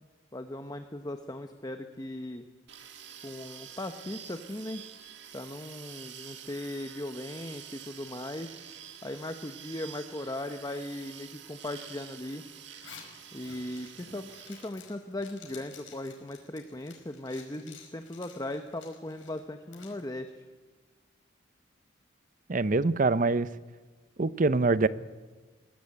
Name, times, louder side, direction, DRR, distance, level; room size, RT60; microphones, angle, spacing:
voice 1, 0.0-2.5 3.2-4.8 5.3-8.5 9.0-12.4 13.3-20.4, left 1 dB, 20° left, 7 dB, 0.9 m, -38 dB
sound 1, 2.7-14.7, right 9 dB, 65° right, 1.7 m, -48 dB
Zipper (clothing), 12.7-20.0, left 6 dB, 85° left, 5.0 m, -52 dB
voice 2, 22.5-23.5 24.2-24.9, right 3 dB, 45° right, 16 dB, 0.7 m, -24 dB
22.0 x 16.5 x 8.6 m, 1.3 s
head